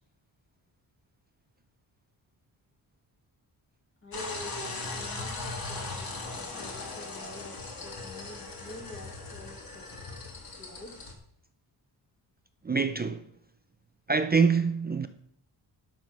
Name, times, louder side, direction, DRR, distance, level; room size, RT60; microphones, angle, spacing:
voice 1, 4.0-6.1 6.5-10.3 10.6-10.9, left 1 dB, 30° left, 1.7 m, -48 dB
sound 1, 4.1-11.1, left 3 dB, 50° left, 2.2 m, -38 dB
voice 2, 12.6-13.3 14.1-15.1, right 5 dB, 20° right, 0.4 m, -25 dB
11.5 x 6.4 x 5.3 m
wide cardioid pair, 165°, 45 cm